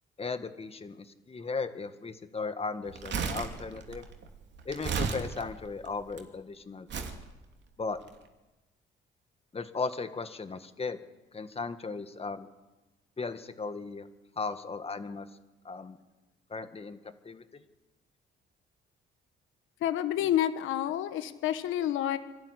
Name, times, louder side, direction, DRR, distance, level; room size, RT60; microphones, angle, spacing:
voice 1, 0.2-4.0 4.7-7.1 7.8-8.0 9.5-11.0 11.3-12.5 13.2-14.1 14.4-15.3 15.6-16.0 16.5-17.0 17.2-17.6, left 4 dB, 30° left, 10 dB, 1.8 m, -36 dB
Crumpling crinkling, 2.9-6.2 6.9-7.2 8.0-8.1, right 5 dB, 65° right, 2.8 m, -34 dB
voice 2, 19.8-22.2, left 11 dB, 90° left, 11 dB, 1.3 m, -29 dB
26.0 x 13.0 x 9.9 m, 1.1 s
cardioid pair, 90°, 20 cm